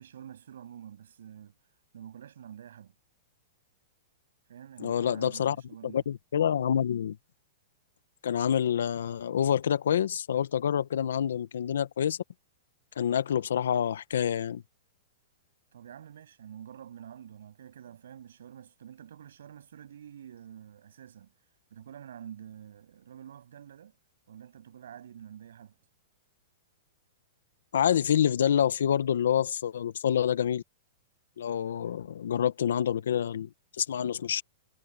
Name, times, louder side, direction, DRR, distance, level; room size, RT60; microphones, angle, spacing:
voice 1, 0.0-1.6 1.9-2.9 4.5-6.0 15.7-21.3 21.7-24.0 24.3-25.7, right 9 dB, 85° right, 7.8 m, -47 dB
voice 2, 4.8-5.6 5.8-7.2 8.2-12.2 13.0-14.6 27.7-30.6 31.4-33.5 33.8-34.4, left 9 dB, 90° left, 1.3 m, -27 dB
supercardioid pair, 170°, 0 cm